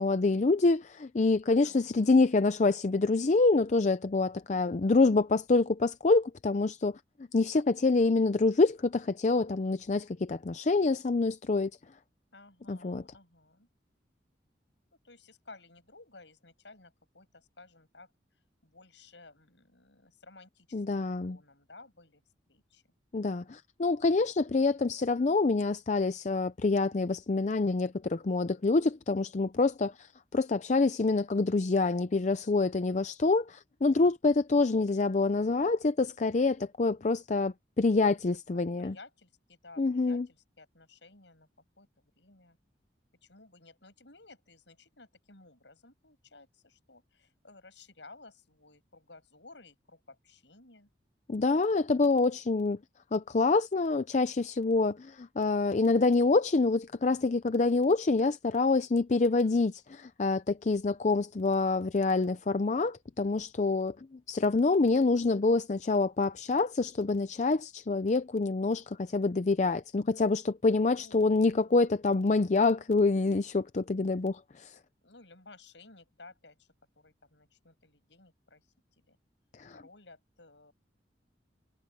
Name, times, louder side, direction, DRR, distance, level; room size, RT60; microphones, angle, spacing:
voice 1, 0.0-7.0 7.3-11.7 12.7-13.0 20.7-21.4 23.1-38.9 39.8-40.3 51.3-52.8 53.1-74.8 79.6-79.7, left 3 dB, 40° left, 0.5 m, -26 dB
voice 2, 1.6-2.2 4.8-5.2 12.3-13.7 15.0-18.1 18.6-22.2 22.5-22.8 38.3-41.5 41.8-42.6 43.2-50.9 70.9-71.3 71.6-71.8 75.0-76.7 77.0-78.7 79.1-79.2 79.7-80.7, left 3 dB, 80° left, 7.2 m, -55 dB
head